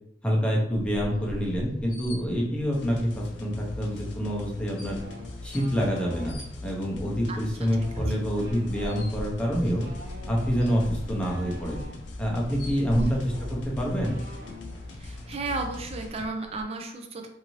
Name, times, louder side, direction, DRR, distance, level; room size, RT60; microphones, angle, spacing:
voice 1, 0.2-5.0 5.4-9.9 10.3-11.8 12.2-13.2 13.5-14.2, equal, 5° left, -3 dB, 0.6 m, -27 dB
sound 1, 0.7-16.6, equal, 55° left, 0.9 m, -41 dB
sound 2, 2.7-16.3, left 2 dB, 80° left, 0.4 m, -41 dB
sound 3, 4.9-6.3 7.6-11.9 12.9-13.0 13.2-14.9 15.2-15.4 15.7-16.2, equal, 85° right, 0.9 m, -46 dB
voice 2, 15.0-17.3, right 3 dB, 35° right, 4 dB, 0.4 m, -33 dB
2.7 x 2.6 x 3.0 m, 0.78 s
head